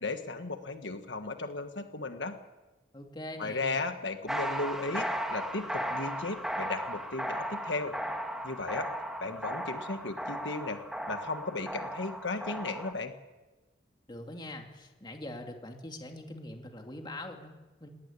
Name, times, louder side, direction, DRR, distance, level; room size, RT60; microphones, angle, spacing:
voice 1, 0.0-2.4 3.4-7.9 8.4-8.9 9.2-10.8 11.1-13.1, left 3 dB, 70° left, 7 dB, 1.5 m, -35 dB
voice 2, 2.9-3.8 14.1-17.9, left 1 dB, 25° left, 3 dB, 2.4 m, -43 dB
sound 1, 4.3-12.9, equal, 5° right, 1.7 m, -36 dB
19.0 x 18.5 x 9.9 m, 1.2 s
head